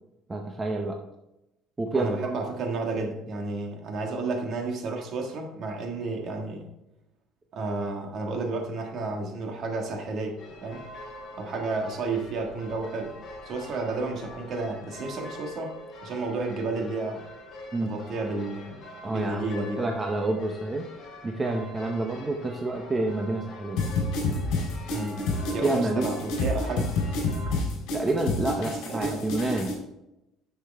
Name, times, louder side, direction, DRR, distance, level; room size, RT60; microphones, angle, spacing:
voice 1, 0.3-1.0 1.8-2.3 17.7-17.9 19.0-20.9 21.2-23.8 25.6-26.1 27.9-29.8, right 2 dB, 15° right, 2 dB, 0.7 m, -28 dB
voice 2, 1.9-6.7 7.5-10.9 11.4-13.1 13.4-15.8 16.0-17.2 17.8-19.9 24.9-26.9 28.7-29.2, right 3 dB, 45° right, 3 dB, 1.6 m, -32 dB
sound 1, 10.4-27.5, left 1 dB, 35° left, 2.4 m, -44 dB
sound 2, 23.8-29.7, left 3 dB, 60° left, 3.6 m, -29 dB
10.0 x 6.6 x 3.4 m, 0.90 s
cardioid pair, 160°, 0 cm